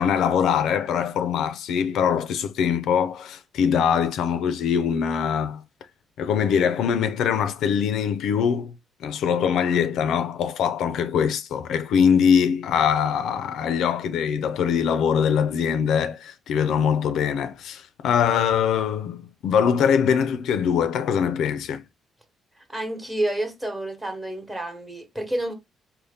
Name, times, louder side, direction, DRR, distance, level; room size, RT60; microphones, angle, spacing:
voice 1, 0.0-5.6 6.2-8.7 9.0-21.8, left 7 dB, 75° left, 0.4 m, -22 dB
voice 2, 22.6-25.5, right 1 dB, 10° right, 0.9 m, -29 dB
4.1 x 2.1 x 3.4 m
cardioid pair, 150°, 0 cm